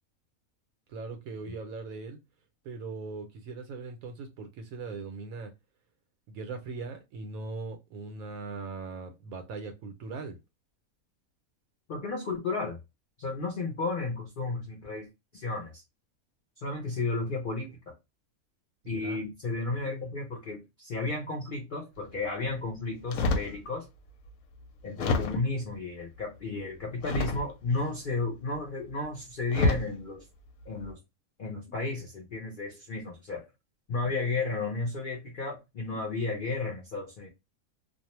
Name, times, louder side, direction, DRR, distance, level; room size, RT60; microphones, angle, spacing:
voice 1, 0.9-2.2 2.6-5.5 6.3-10.4 18.8-19.2, right 3 dB, 75° right, 1.0 m, -40 dB
voice 2, 11.9-12.8 13.2-15.1 15.3-15.8 16.6-17.9 18.9-23.9 24.8-30.2 30.7-31.0 31.4-33.4 33.9-37.3, left 3 dB, 55° left, 0.6 m, -33 dB
sound 1, 23.1-23.6 24.3-24.4 25.0-25.6 27.0-27.7 28.9-29.0 29.5-29.9 30.6-30.9, left 3 dB, 75° left, 1.0 m, -28 dB
2.5 x 2.0 x 2.9 m
omnidirectional pair, 1.5 m